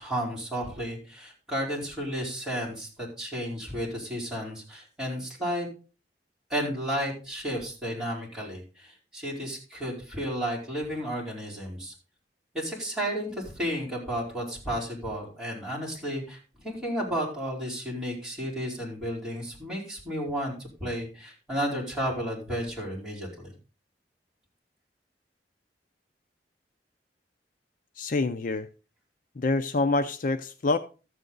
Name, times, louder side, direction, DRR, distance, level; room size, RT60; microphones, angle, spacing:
voice 1, 0.0-5.7 6.5-11.9 12.5-23.5, equal, 5° right, 4.7 m, -32 dB
voice 2, 28.0-28.7 29.4-30.8, left 3 dB, 50° left, 0.5 m, -26 dB
13.5 x 7.9 x 3.9 m
head